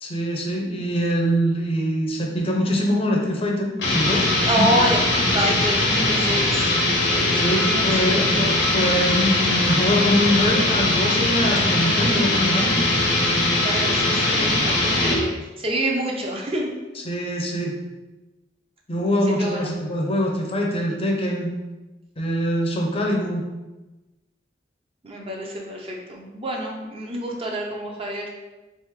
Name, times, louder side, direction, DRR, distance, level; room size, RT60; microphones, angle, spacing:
voice 1, 0.0-4.3 4.6-4.7 7.3-12.8 16.9-17.8 18.9-21.5 22.2-23.5, equal, 35° left, 0 dB, 0.6 m, -23 dB
sound 1, 3.8-15.3, left 2 dB, 80° left, 1.0 m, -21 dB
voice 2, 4.5-6.6 7.1-8.4 13.6-15.3 15.6-16.7 19.4-19.8 25.0-28.2, right 1 dB, 30° right, -1 dB, 0.6 m, -27 dB
3.5 x 3.3 x 3.6 m, 1.1 s
head